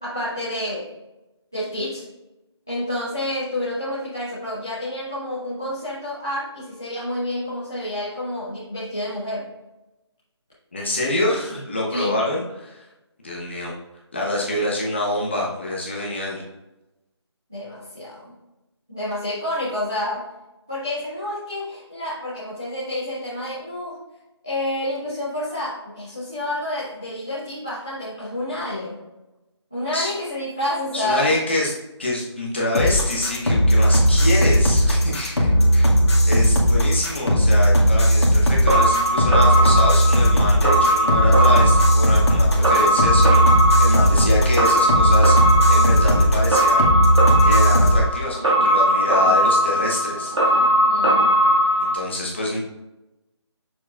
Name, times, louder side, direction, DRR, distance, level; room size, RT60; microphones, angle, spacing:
voice 1, 0.0-0.9 1.5-2.0 2.7-9.5 11.9-12.2 17.5-18.3 18.9-20.3 20.7-24.0 24.4-29.0 29.7-31.3 50.7-51.3, left 1 dB, 5° left, -14 dB, 0.6 m, -29 dB
voice 2, 10.7-12.9 13.2-13.7 14.1-16.4 29.9-30.1 30.9-35.9 36.3-46.9 47.4-50.6 51.8-52.6, left 2 dB, 25° left, -4 dB, 1.2 m, -26 dB
sound 1, 32.7-48.0, equal, 65° left, 2.0 m, -17 dB
sound 2, 38.7-51.9, right 1 dB, 80° right, 2.1 m, -19 dB
7.1 x 6.3 x 2.5 m, 0.98 s
figure-of-eight pair, 180°, 15 cm